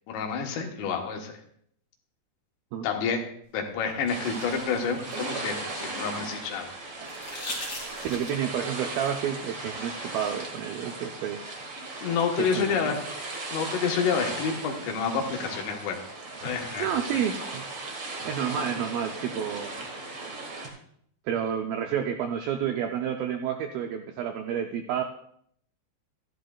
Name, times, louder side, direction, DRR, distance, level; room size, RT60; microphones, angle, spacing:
voice 1, 0.1-1.4 2.8-3.2 3.5-6.7 12.0-13.0 13.5-16.0 16.4-17.2, left 6 dB, 90° left, 2 dB, 3.5 m, -29 dB
sound 1, 3.9-6.1 7.0-8.6 10.3-10.4, left 1 dB, 25° left, 2.6 m, -40 dB
sound 2, 4.1-20.7, right 3 dB, 45° right, 1.5 m, -37 dB
voice 2, 8.0-11.4 12.4-13.0 16.8-17.7 18.2-19.9 21.3-25.0, right 8 dB, 85° right, 4 dB, 2.1 m, -30 dB
13.5 x 11.5 x 2.3 m, 0.67 s
omnidirectional pair, 4.9 m